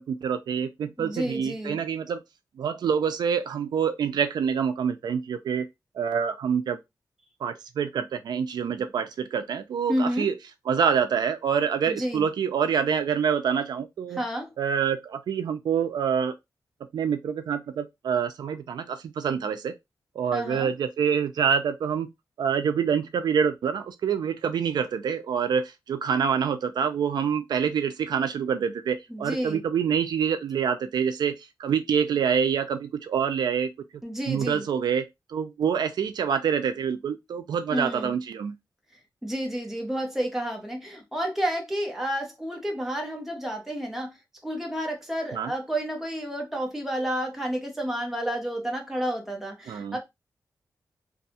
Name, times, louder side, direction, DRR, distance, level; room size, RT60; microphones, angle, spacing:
voice 1, 0.0-2.2 2.6-5.7 6.0-6.8 7.4-10.3 10.7-14.2 14.6-16.3 16.9-19.7 20.2-22.1 22.4-33.7 34.3-38.5 45.3-45.5 49.7-50.0, right 7 dB, 80° right, 0.3 m, -26 dB
voice 2, 1.0-1.8 9.9-10.3 11.9-12.3 14.1-14.5 20.3-20.7 29.1-29.6 34.0-34.7 37.7-38.1 39.2-44.1 44.4-50.0, equal, 5° right, 0.7 m, -30 dB
2.7 x 2.2 x 2.7 m
wide cardioid pair, 180°, 7 cm